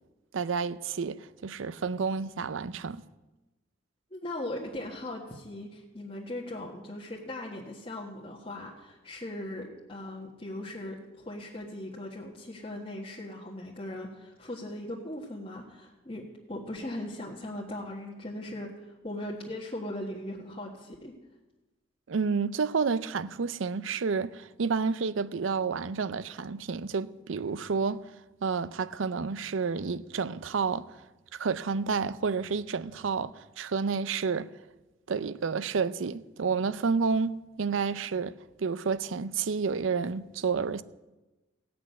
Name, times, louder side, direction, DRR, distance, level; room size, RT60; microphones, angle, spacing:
voice 1, 0.3-3.0 22.1-28.0 28.4-30.9 31.3-34.5 35.1-38.3 38.6-40.8, right 5 dB, 85° right, 0.5 m, -30 dB
voice 2, 4.1-21.1, left 1 dB, 30° left, 1.4 m, -39 dB
16.5 x 6.0 x 9.3 m
head